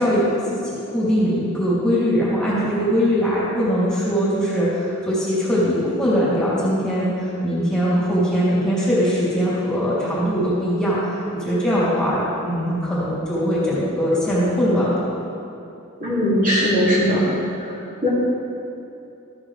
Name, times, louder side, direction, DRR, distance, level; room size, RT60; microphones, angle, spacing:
voice 1, 0.0-14.9, equal, 5° left, -10 dB, 2.8 m, -21 dB
voice 2, 16.0-17.2 17.6-17.7 18.0-18.1, equal, 35° right, -8 dB, 2.6 m, -19 dB
13.5 x 9.9 x 3.3 m, 2.7 s
head